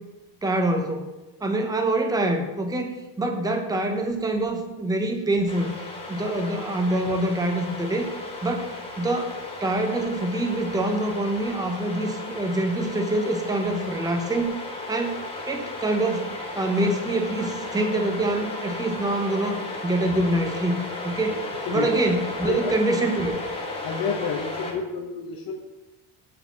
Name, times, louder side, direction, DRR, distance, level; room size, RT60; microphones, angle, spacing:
voice 1, 0.4-1.1 1.4-5.7 6.1-8.1 8.4-14.5 14.9-15.2 15.5-21.4 21.7-23.4, right 1 dB, 10° right, 4 dB, 0.7 m, -25 dB
sound 1, 5.5-24.7, left 2 dB, 10° left, 1.4 m, -35 dB
voice 2, 21.5-21.9 22.4-22.7 23.8-25.6, left 5 dB, 50° left, 1 dB, 0.9 m, -30 dB
8.5 x 4.1 x 6.9 m, 1.1 s
cardioid pair, 160°, 45 cm